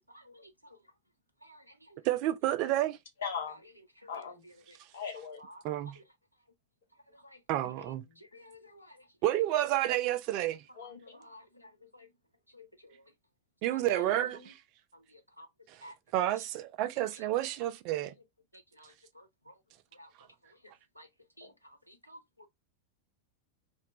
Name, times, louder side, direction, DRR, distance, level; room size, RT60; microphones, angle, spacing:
voice 1, 0.1-0.5 1.4-2.0 4.0-4.1 7.1-7.4 8.2-9.0 11.2-12.1 12.5-12.9 13.7-13.8 15.1-15.5 15.8-15.9 18.8-19.5 20.0-20.1 21.0-21.1 21.4-22.5, left 1 dB, 90° left, 0.4 m, -54 dB
voice 2, 2.0-3.0 5.6-6.0 7.5-8.0 9.2-10.6 13.6-14.5 15.7-15.8 16.1-18.1, right 14 dB, 45° right, 0.3 m, -30 dB
voice 3, 3.2-3.6 4.1-4.4 4.9-5.4 8.1-8.2 10.7-11.3 13.9-14.5 21.4-21.5, left 6 dB, 65° left, 0.8 m, -40 dB
2.5 x 2.1 x 2.9 m
figure-of-eight pair, 90°, 0 cm